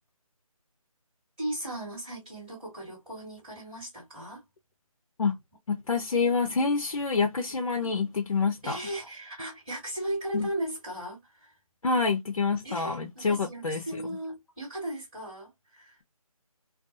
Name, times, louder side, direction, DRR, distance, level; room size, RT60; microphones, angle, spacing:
voice 1, 1.4-4.4 7.8-7.9 8.6-11.5 12.6-16.0, right 1 dB, 5° right, 1.6 m, -37 dB
voice 2, 5.7-8.8 10.3-10.5 11.8-13.8, left 4 dB, 60° left, 0.6 m, -27 dB
2.5 x 2.3 x 2.6 m
figure-of-eight pair, 165°, 19 cm